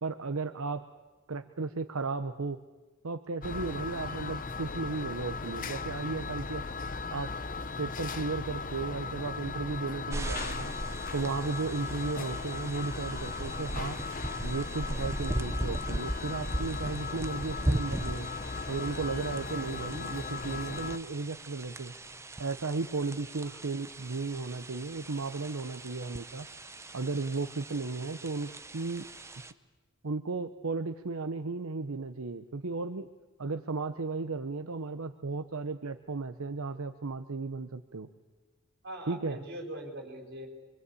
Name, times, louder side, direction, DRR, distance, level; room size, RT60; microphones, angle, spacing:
voice 1, 0.0-0.9 1.3-2.6 3.0-6.6 7.1-7.3 7.8-10.7 11.1-14.0 14.4-18.3 18.7-21.9 22.4-26.5 26.9-29.1 30.0-33.1 33.4-38.1 39.1-39.4, right 3 dB, 75° right, 8 dB, 0.8 m, -35 dB
sound 1, 3.4-21.0, left 4 dB, 40° left, 0.9 m, -37 dB
sound 2, 10.1-29.5, right 1 dB, 15° right, 0.7 m, -39 dB
voice 2, 38.8-40.5, right 1 dB, 55° right, 2 dB, 4.6 m, -42 dB
26.0 x 23.0 x 8.4 m, 1.3 s
head